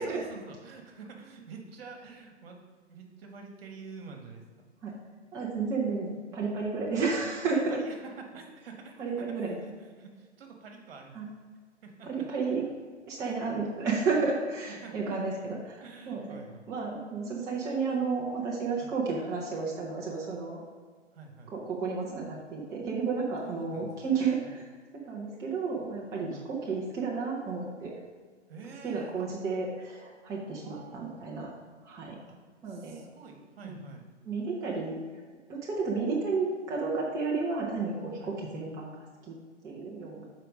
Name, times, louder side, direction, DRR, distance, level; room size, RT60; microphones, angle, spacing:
voice 1, 0.0-2.6 2.9-4.7 7.5-11.3 11.8-12.1 13.2-13.4 14.8-14.9 15.8-16.7 18.8-18.9 21.1-21.5 23.4-24.6 26.1-26.5 28.5-29.3 30.6-31.2 32.3-32.4 32.7-34.1 38.2-38.4, right 4 dB, 55° right, 3 dB, 1.4 m, -48 dB
voice 2, 5.3-7.8 9.0-9.6 11.1-11.2 12.0-12.6 13.1-16.4 16.7-20.6 21.5-24.7 25.0-27.9 28.8-31.5 31.8-32.2 32.6-33.0 33.6-33.9 34.2-35.0 35.5-39.0 39.2-39.3 39.6-40.2, right 4 dB, 10° right, -4 dB, 0.6 m, -32 dB
6.7 x 4.6 x 5.0 m, 1.6 s
hypercardioid pair, 130°, 35 cm